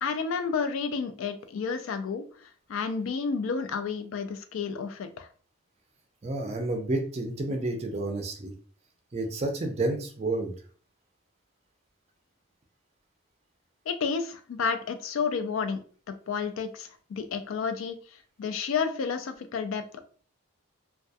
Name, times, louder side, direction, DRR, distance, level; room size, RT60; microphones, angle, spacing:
voice 1, 0.0-5.3 13.9-15.8 16.1-18.0 18.4-20.0, left 5 dB, 70° left, 9 dB, 0.3 m, -31 dB
voice 2, 6.2-8.5 9.1-10.5, right 2 dB, 30° right, 4 dB, 0.4 m, -30 dB
2.3 x 2.2 x 2.6 m, 0.43 s
head